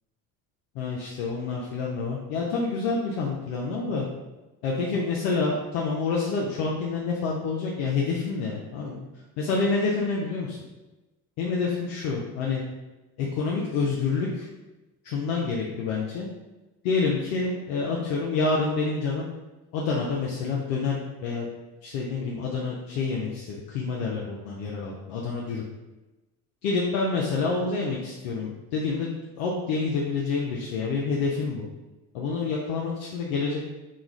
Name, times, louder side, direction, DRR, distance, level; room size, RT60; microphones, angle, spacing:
voice 1, 0.7-4.1 4.6-9.0 9.4-10.6 11.4-12.6 13.2-14.5 15.0-16.3 16.8-19.3 19.7-21.5 21.8-25.6 26.6-29.1 29.4-31.7 32.1-33.7, left 4 dB, 70° left, -3 dB, 0.6 m, -28 dB
2.4 x 2.3 x 3.0 m, 1.1 s
hypercardioid pair, 55°, 46 cm